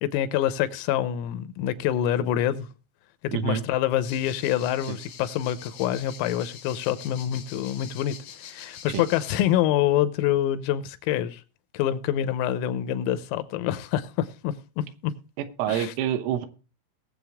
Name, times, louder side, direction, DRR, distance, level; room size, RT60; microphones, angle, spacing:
voice 1, 0.0-2.7 3.2-11.4 11.7-15.1 15.7-15.9, left 11 dB, 90° left, 3.5 m, -26 dB
voice 2, 3.3-3.6 4.9-5.0 8.9-9.1 15.4-16.5, right 10 dB, 80° right, 3.5 m, -27 dB
sound 1, 4.0-9.4, left 8 dB, 70° left, 1.9 m, -45 dB
19.0 x 7.7 x 3.5 m
omnidirectional pair, 5.9 m